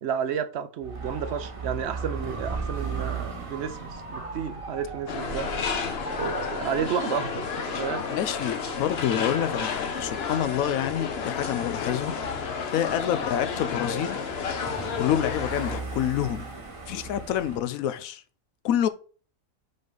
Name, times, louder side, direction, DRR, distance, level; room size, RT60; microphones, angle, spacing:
voice 1, 0.0-5.5 6.2-8.0, right 8 dB, 60° right, 0.8 m, -31 dB
Dog / Motorcycle, 0.8-17.6, right 4 dB, 25° right, 1.1 m, -38 dB
sound 1, 5.1-15.8, left 6 dB, 50° left, 1.0 m, -31 dB
voice 2, 8.1-14.3 14.9-16.5 16.9-18.2 18.6-18.9, left 10 dB, 85° left, 1.0 m, -28 dB
5.6 x 5.2 x 3.8 m
omnidirectional pair, 1.4 m